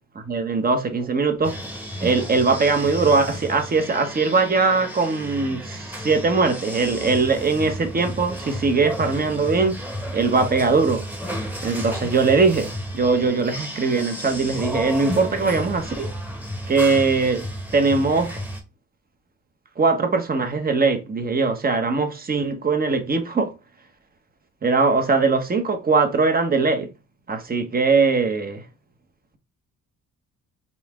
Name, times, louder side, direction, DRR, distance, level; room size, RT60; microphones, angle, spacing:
voice 1, 0.3-1.5 2.0-9.8 10.1-11.0 11.6-12.7 12.9-16.1 16.7-17.4 17.7-18.3 19.8-23.5 24.6-26.9 27.3-28.6, right 4 dB, 30° right, 1.0 m, -21 dB
sound 1, 1.4-18.6, equal, 5° right, 1.2 m, -33 dB
4.2 x 2.8 x 3.6 m
cardioid pair, 90°, 30 cm